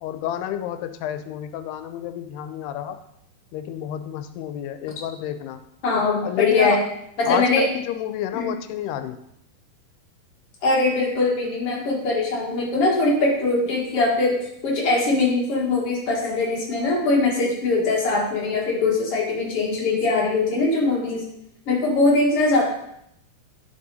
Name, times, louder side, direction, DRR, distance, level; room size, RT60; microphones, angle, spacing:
voice 1, 0.0-3.0 3.5-5.6 6.2-6.9 7.3-9.2, left 10 dB, 85° left, 10 dB, 2.6 m, -30 dB
voice 2, 5.8-6.8 7.2-7.7 8.3-8.5 10.6-14.4 14.6-21.2 21.7-22.6, left 3 dB, 50° left, -3 dB, 2.1 m, -21 dB
9.2 x 6.2 x 4.1 m, 0.76 s
omnidirectional pair, 4.6 m